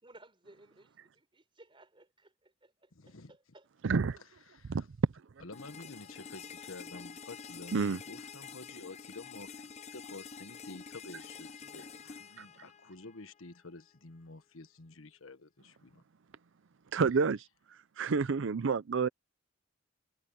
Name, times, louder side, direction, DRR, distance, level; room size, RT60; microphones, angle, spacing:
voice 1, 0.0-3.7, right 2 dB, 25° right, 4.3 m, -59 dB
voice 2, 2.9-3.3 5.4-16.0, left 3 dB, 80° left, 1.4 m, -50 dB
voice 3, 3.8-4.2 7.7-8.0 12.4-12.5 16.9-17.5 18.0-19.1, right 5 dB, 65° right, 0.5 m, -29 dB
sound 1, 5.5-13.5, left 6 dB, 35° left, 0.6 m, -48 dB
head